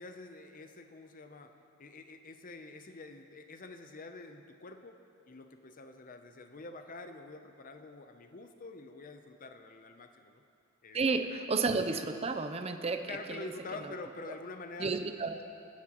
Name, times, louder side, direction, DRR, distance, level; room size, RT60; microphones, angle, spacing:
voice 1, 0.0-10.4 10.8-11.0 11.3-11.5 13.1-15.0, left 3 dB, 40° left, 7 dB, 0.7 m, -47 dB
voice 2, 10.9-13.5 13.8-13.9 14.8-15.5, right 4 dB, 30° right, 7 dB, 0.6 m, -32 dB
23.0 x 10.0 x 3.0 m, 2.5 s
head